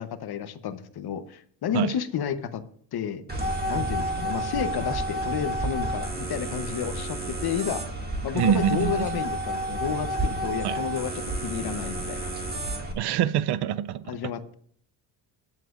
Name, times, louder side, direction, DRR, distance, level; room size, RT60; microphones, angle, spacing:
voice 1, 0.0-2.6 2.9-3.3 3.7-7.8 8.2-12.3 14.0-14.5, left 8 dB, 50° left, 1.0 m, -31 dB
sound 1, 3.3-12.9, right 1 dB, 20° right, 2.1 m, -30 dB
voice 2, 8.3-8.9 10.6-10.8 12.9-14.0, right 10 dB, 55° right, 0.5 m, -24 dB
23.0 x 7.6 x 2.5 m
cardioid pair, 95°, 48 cm